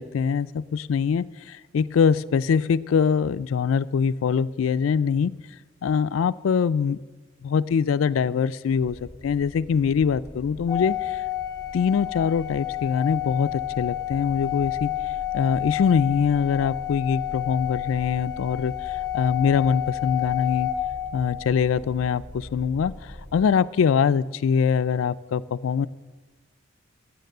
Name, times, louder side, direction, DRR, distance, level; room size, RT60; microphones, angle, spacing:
voice 1, 0.0-5.3 5.8-7.0 7.4-11.2 11.7-14.9 15.3-20.7 21.1-25.9, left 6 dB, 75° left, 16 dB, 0.4 m, -23 dB
sound 1, 8.7-23.4, equal, 5° left, 1.5 m, -43 dB
Organ, 10.7-21.5, left 14 dB, 20° left, 0.5 m, -30 dB
9.1 x 9.0 x 6.6 m, 1.2 s
head